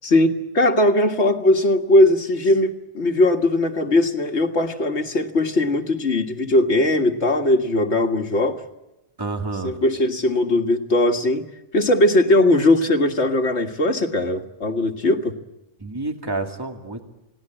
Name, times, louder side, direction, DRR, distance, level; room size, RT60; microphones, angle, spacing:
voice 1, 0.0-8.6 9.6-11.5 11.7-15.3, left 1 dB, 65° left, 4 dB, 2.1 m, -19 dB
voice 2, 9.2-9.8 15.8-17.0, right 3 dB, 20° right, 3 dB, 2.3 m, -29 dB
29.5 x 18.5 x 8.9 m, 0.96 s
omnidirectional pair, 1.2 m